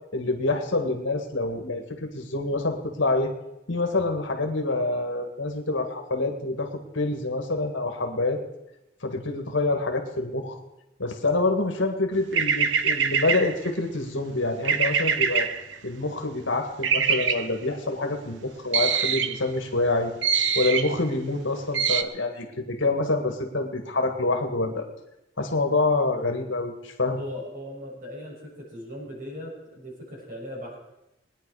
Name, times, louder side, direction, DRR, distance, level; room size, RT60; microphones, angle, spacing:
voice 1, 0.1-3.3 3.7-8.4 9.0-10.6 11.0-15.5 15.8-20.1 20.6-24.9 25.4-27.2, left 2 dB, 65° left, 4 dB, 2.0 m, -26 dB
sound 1, 12.3-13.7 14.6-15.8 16.8-17.5 18.7-19.4 20.2-21.0 21.7-22.0, right 7 dB, 65° right, 0.8 m, -24 dB
voice 2, 27.2-30.8, left 1 dB, 45° right, -3 dB, 6.5 m, -38 dB
21.0 x 10.0 x 5.0 m, 0.92 s
head